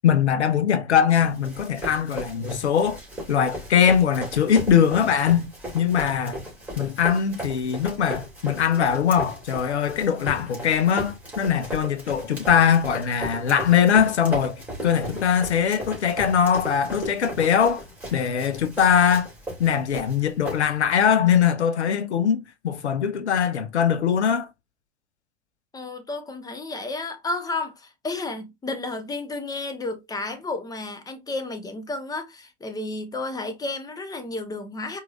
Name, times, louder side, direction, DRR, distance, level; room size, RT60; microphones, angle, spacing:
voice 1, 0.0-3.0 3.3-5.5 5.7-6.4 6.8-17.8 18.1-19.3 19.6-24.5, left 8 dB, 80° left, 0.8 m, -21 dB
Run, 1.1-21.0, right 1 dB, 5° right, 2.5 m, -37 dB
voice 2, 25.7-35.0, left 2 dB, 10° left, 0.9 m, -32 dB
4.6 x 2.8 x 2.4 m
hypercardioid pair, 95°, 33 cm